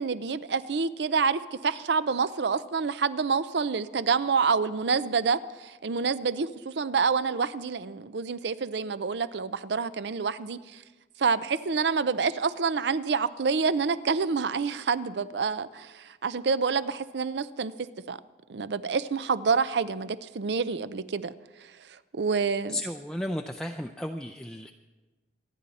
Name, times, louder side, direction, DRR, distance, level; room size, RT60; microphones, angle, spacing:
voice 1, 0.0-10.8 11.2-17.7 18.1-18.2 18.5-21.3 22.1-22.8, right 5 dB, 75° right, 15 dB, 0.5 m, -27 dB
voice 2, 22.7-24.7, left 1 dB, 5° left, 3 dB, 0.4 m, -34 dB
26.5 x 10.0 x 4.2 m, 1.2 s
head